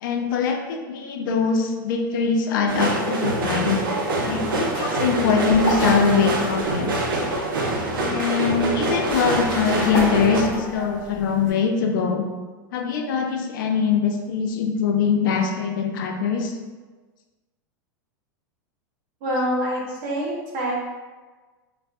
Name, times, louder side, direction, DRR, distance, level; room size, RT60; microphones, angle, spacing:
voice 1, 0.0-3.8 4.3-7.0 8.1-12.2 12.7-16.6, left 6 dB, 70° left, 3 dB, 0.4 m, -22 dB
sound 1, 2.7-10.4, right 2 dB, 85° right, 0.5 m, -25 dB
sound 2, 3.2-11.5, left 1 dB, 50° left, 0.8 m, -34 dB
voice 2, 19.2-20.8, equal, 55° right, -3 dB, 0.8 m, -25 dB
2.3 x 2.2 x 2.5 m, 1.3 s
hypercardioid pair, 115°, 11 cm